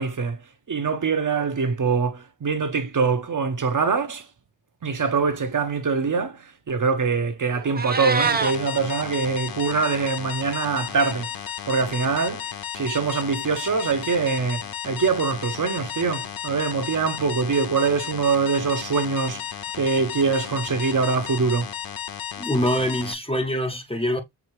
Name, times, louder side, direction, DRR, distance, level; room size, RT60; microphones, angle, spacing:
voice 1, 0.0-4.3 4.8-21.7, right 5 dB, 45° right, 0.9 m, -24 dB
Meow, 7.6-8.5, right 4 dB, 20° right, 0.6 m, -24 dB
sound 1, 8.2-23.1, left 9 dB, 55° left, 0.6 m, -34 dB
voice 2, 22.4-24.2, equal, 15° left, 0.8 m, -24 dB
6.0 x 2.8 x 3.1 m
wide cardioid pair, 100°, 43 cm